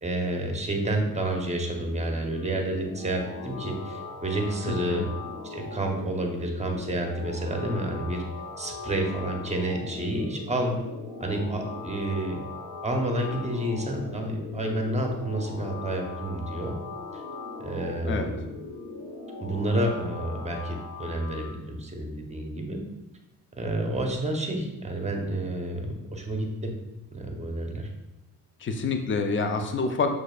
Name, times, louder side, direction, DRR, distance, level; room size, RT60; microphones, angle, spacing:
voice 1, 0.0-5.0 5.5-8.2 8.6-10.8 11.2-12.4 12.8-16.8 17.1-17.2 17.6-18.4 19.4-22.8 23.5-26.7 27.1-27.9, right 1 dB, 20° right, 2 dB, 0.8 m, -29 dB
sound 1, 1.6-21.5, left 3 dB, 80° left, 1.2 m, -40 dB
voice 2, 4.6-5.1 18.1-18.3 28.6-30.1, left 4 dB, 30° left, 6 dB, 0.5 m, -27 dB
6.3 x 2.7 x 2.4 m, 0.99 s
cardioid pair, 75°, 37 cm